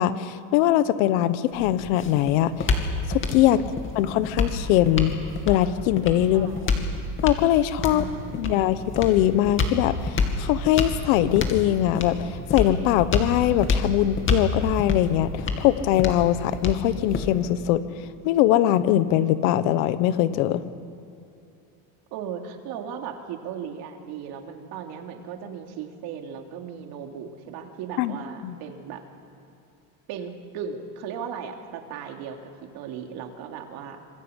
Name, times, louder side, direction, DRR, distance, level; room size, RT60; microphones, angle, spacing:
voice 1, 0.0-2.7 3.1-3.6 3.9-5.1 5.5-6.5 7.2-8.0 8.3-17.8 18.2-20.6 28.0-28.2 28.4-28.5, left 13 dB, 75° left, 13 dB, 1.4 m, -22 dB
sound 1, 1.5-17.6, left 4 dB, 30° left, 2.6 m, -28 dB
voice 2, 3.5-4.1 6.3-6.9 7.9-8.5 22.1-29.0 30.1-34.1, right 7 dB, 60° right, 3 dB, 3.1 m, -37 dB
26.5 x 20.0 x 8.2 m, 2.6 s
supercardioid pair, 135°, 41 cm